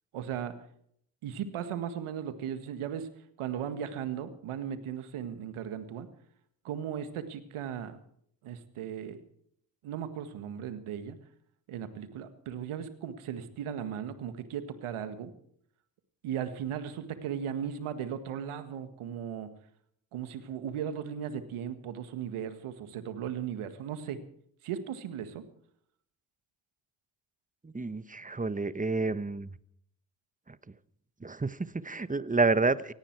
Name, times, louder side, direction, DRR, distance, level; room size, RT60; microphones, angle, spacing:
voice 1, 0.1-0.5 1.2-3.1 3.4-6.1 6.6-8.0 8.4-9.2 9.8-11.2 11.7-15.3 16.2-19.5 20.1-24.2 24.6-25.5, right 8 dB, 75° right, 11 dB, 1.8 m, -37 dB
voice 2, 27.6-29.5 30.5-30.6 31.2-32.9, right 3 dB, 15° right, 16 dB, 1.1 m, -29 dB
17.5 x 17.0 x 4.7 m, 0.67 s
hypercardioid pair, 40°, 50 cm